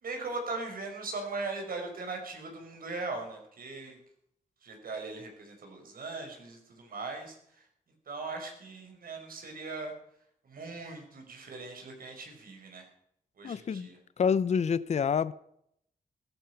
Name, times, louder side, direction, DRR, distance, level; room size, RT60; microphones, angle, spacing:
voice 1, 0.0-4.0 4.6-7.7 8.1-9.9 10.4-12.9 13.4-14.0, right 3 dB, 80° right, 5.1 m, -39 dB
voice 2, 13.4-13.9 14.2-15.3, left 6 dB, 50° left, 0.6 m, -27 dB
17.5 x 14.0 x 5.7 m
wide cardioid pair, 160°, 15 cm